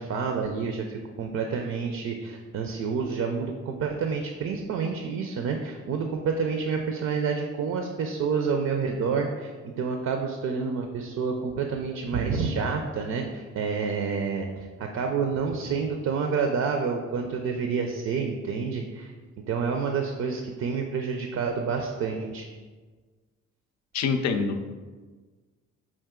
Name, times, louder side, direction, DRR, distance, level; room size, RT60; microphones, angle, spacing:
voice 1, 0.0-19.1 19.5-22.5, right 5 dB, 60° right, 4 dB, 0.5 m, -28 dB
voice 2, 23.9-24.7, left 5 dB, 60° left, 6 dB, 0.5 m, -26 dB
5.6 x 2.5 x 3.6 m, 1.4 s
cardioid pair, 90°, 30 cm